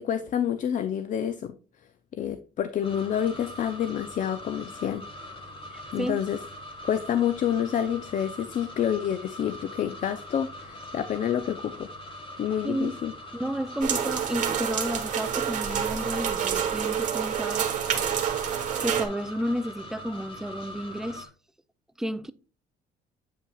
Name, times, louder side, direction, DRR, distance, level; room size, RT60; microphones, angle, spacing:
voice 1, 0.0-1.5 2.1-5.1 5.9-6.4 6.8-11.9 12.4-13.1, left 9 dB, 50° left, 0.5 m, -28 dB
sound 1, 2.8-21.3, left 1 dB, 35° left, 1.5 m, -42 dB
voice 2, 5.7-6.2 12.6-13.0 13.3-18.1 18.5-21.3 22.0-22.3, equal, 5° right, 0.5 m, -32 dB
sound 2, 13.8-19.0, right 8 dB, 50° right, 1.4 m, -28 dB
8.6 x 5.5 x 2.3 m
cardioid pair, 95°, 16 cm